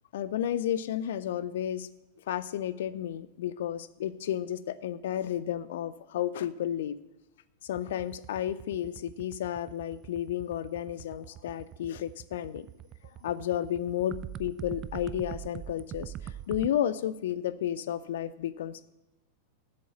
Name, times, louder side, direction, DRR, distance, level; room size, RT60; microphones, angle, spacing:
voice 1, 0.1-1.9 2.3-6.9 7.6-12.7 13.2-18.8, left 10 dB, 60° left, 0.5 m, -32 dB
sound 1, 7.7-16.7, right 11 dB, 30° right, 0.3 m, -42 dB
7.8 x 6.5 x 7.1 m
figure-of-eight pair, 90°, 0 cm